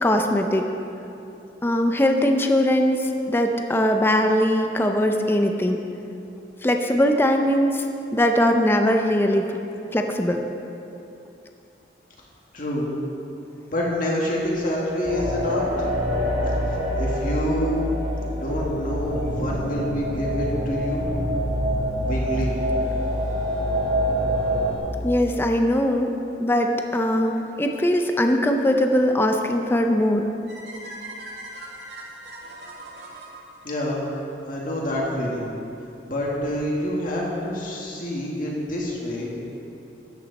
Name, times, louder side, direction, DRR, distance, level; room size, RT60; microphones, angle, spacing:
voice 1, 0.0-0.6 1.6-5.8 6.6-7.8 8.1-9.6 9.9-10.5 25.0-26.1 26.4-30.3, left 1 dB, 15° left, 4 dB, 0.5 m, -21 dB
voice 2, 12.5-12.9 13.7-15.9 17.0-17.8 18.3-21.1 22.0-22.5 33.6-34.0 34.4-35.5 36.0-39.3, equal, 50° left, -3 dB, 2.0 m, -27 dB
sound 1, 15.0-24.8, equal, 50° right, 2.5 m, -25 dB
sound 2, 30.5-34.6, right 1 dB, 75° right, 1.8 m, -40 dB
13.0 x 8.9 x 4.1 m, 2.8 s
head